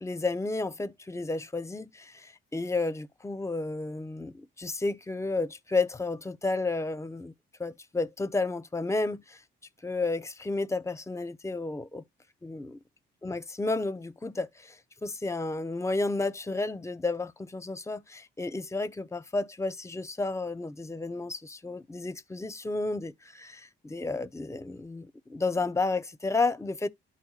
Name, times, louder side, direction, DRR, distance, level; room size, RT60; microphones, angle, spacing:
voice 1, 0.0-7.3 7.6-9.4 9.8-12.0 12.4-12.8 13.2-14.8 15.0-26.9, left 3 dB, 15° left, 0.6 m, -32 dB
12.5 x 4.2 x 2.4 m
cardioid pair, 90°, 20 cm